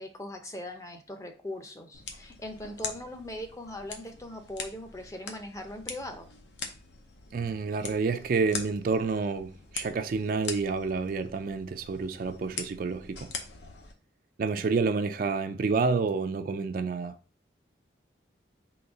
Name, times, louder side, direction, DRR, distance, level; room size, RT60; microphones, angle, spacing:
voice 1, 0.0-6.2, left 1 dB, 15° left, 0.5 m, -40 dB
sound 1, 1.9-13.9, left 5 dB, 75° left, 0.8 m, -42 dB
voice 2, 7.3-13.3 14.4-17.2, right 4 dB, 50° right, 0.3 m, -29 dB
3.9 x 2.8 x 4.7 m
head